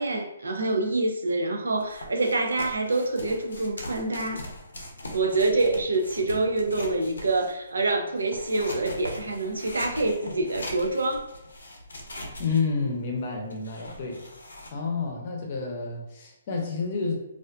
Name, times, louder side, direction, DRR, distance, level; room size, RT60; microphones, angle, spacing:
voice 1, 0.0-4.4 5.1-11.3, right 2 dB, 90° right, 4 dB, 0.5 m, -26 dB
sound 1, 1.8-7.7 8.2-14.7, left 1 dB, 85° left, 0.6 m, -41 dB
voice 2, 12.4-14.2 14.7-17.3, left 4 dB, 45° left, 1 dB, 0.6 m, -29 dB
2.4 x 2.3 x 2.3 m, 0.88 s
hypercardioid pair, 145°, 0 cm